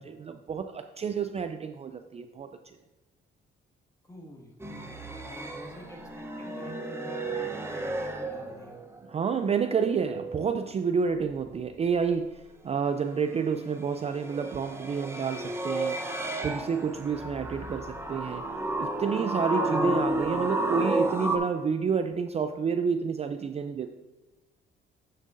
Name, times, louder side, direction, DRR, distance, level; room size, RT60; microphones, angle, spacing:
voice 1, 0.0-2.8 9.1-18.5 18.8-23.9, right 6 dB, 30° right, 8 dB, 0.4 m, -29 dB
voice 2, 4.0-8.8, equal, 15° left, 0 dB, 1.8 m, -48 dB
sound 1, 4.6-9.0 9.3-10.5 13.8-21.4, right 1 dB, 10° right, 0.8 m, -32 dB
10.5 x 6.4 x 2.6 m, 1.1 s
cardioid pair, 90°, 20 cm